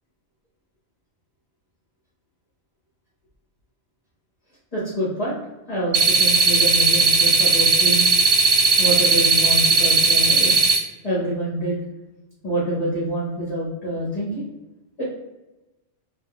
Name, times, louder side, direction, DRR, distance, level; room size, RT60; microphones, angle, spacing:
voice 1, 4.7-5.4 5.7-8.0 8.8-10.6 11.0-11.8 12.4-14.5 15.0-15.1, right 1 dB, 35° left, -8 dB, 0.9 m, -26 dB
sound 1, 5.9-10.8, right 4 dB, 75° right, 1.0 m, -17 dB
2.4 x 2.2 x 3.5 m, 1.0 s
omnidirectional pair, 1.3 m